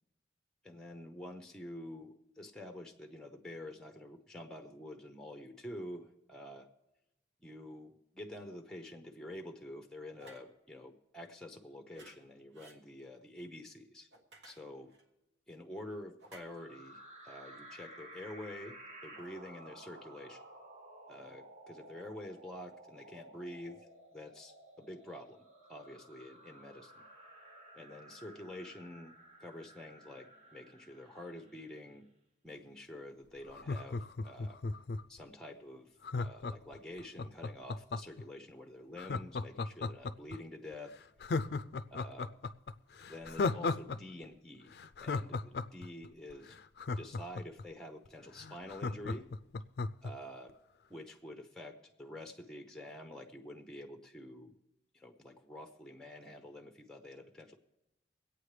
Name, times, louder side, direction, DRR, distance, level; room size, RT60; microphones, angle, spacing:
voice 1, 0.6-6.7 7.4-14.1 14.4-14.9 15.5-18.8 19.0-20.4 21.1-27.0 27.7-29.1 29.4-32.1 32.4-34.6 35.1-41.0 41.9-42.3 43.1-46.6 47.0-49.3 50.0-50.6 50.9-54.6 54.9-57.6, left 1 dB, 5° left, 5 dB, 0.6 m, -48 dB
sound 1, 10.2-10.5 11.9-12.2 12.5-12.8 14.1-15.0 16.2-16.4, right 1 dB, 70° right, 1.5 m, -55 dB
sound 2, 16.2-31.9, right 1 dB, 35° right, 1.4 m, -55 dB
Laughter, 33.5-35.2 36.0-38.2 39.0-40.4 40.7-40.8 41.2-44.0 44.2-44.3 44.7-47.6 48.1-48.2 48.4-50.1 50.5-50.6, left 3 dB, 55° left, 0.4 m, -35 dB
24.0 x 8.6 x 3.3 m, 0.91 s
head